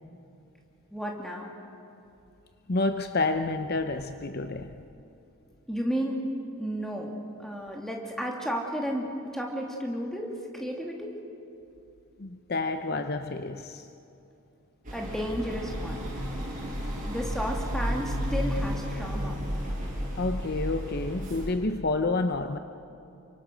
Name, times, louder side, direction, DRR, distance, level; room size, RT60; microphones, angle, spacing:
voice 1, 0.9-1.5 5.7-6.3 6.6-7.1 7.4-11.1 14.9-16.0 17.0-19.4, equal, ahead, 0 dB, 2.8 m, -32 dB
voice 2, 2.7-4.8 12.2-13.9 16.8-17.0 20.2-22.6, left 3 dB, 45° left, 8 dB, 0.7 m, -29 dB
sound 1, 14.8-21.5, equal, 40° right, 7.2 m, -32 dB
29.0 x 25.0 x 6.3 m, 2.8 s
head